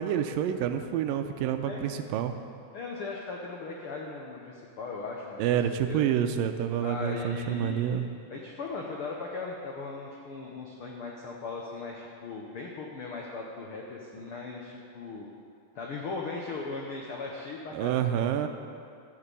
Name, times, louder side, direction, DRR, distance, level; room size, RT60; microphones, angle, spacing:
voice 1, 0.0-2.4 5.4-8.1 17.7-18.5, right 9 dB, 90° right, 8 dB, 2.3 m, -28 dB
voice 2, 2.7-5.4 5.9-6.1 6.8-15.3 15.7-18.0, left 4 dB, 80° left, -1 dB, 1.2 m, -38 dB
14.0 x 5.9 x 8.3 m, 2.4 s
omnidirectional pair, 4.0 m